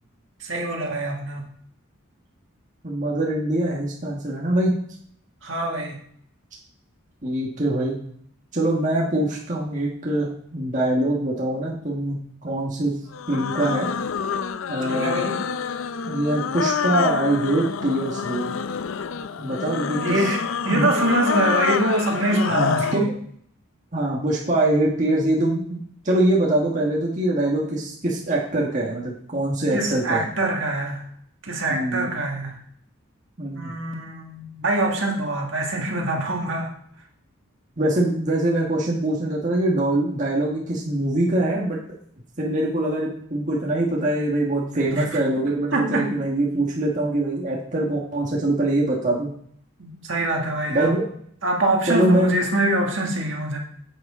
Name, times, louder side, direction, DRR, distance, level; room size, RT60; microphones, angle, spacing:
voice 1, 0.4-1.5 5.4-6.0 14.8-15.4 19.9-23.1 29.7-31.0 31.4-32.6 33.5-36.7 44.9-45.1 45.4-45.5 45.7-46.2 49.8-50.9 51.4-53.6, right 1 dB, 60° right, 0 dB, 1.8 m, -24 dB
voice 2, 2.8-4.7 7.2-8.0 8.5-12.9 13.3-13.9 14.7-15.2 16.1-18.5 19.4-20.3 20.7-20.9 22.5-23.1 23.9-25.8 26.0-30.2 31.7-32.1 33.4-33.7 37.8-41.8 42.4-49.3 50.7-51.0 51.9-52.3, right 1 dB, 35° right, -4 dB, 1.4 m, -23 dB
sound 1, 13.1-23.0, left 6 dB, 70° left, 0.4 m, -27 dB
8.9 x 7.8 x 3.7 m, 0.65 s
head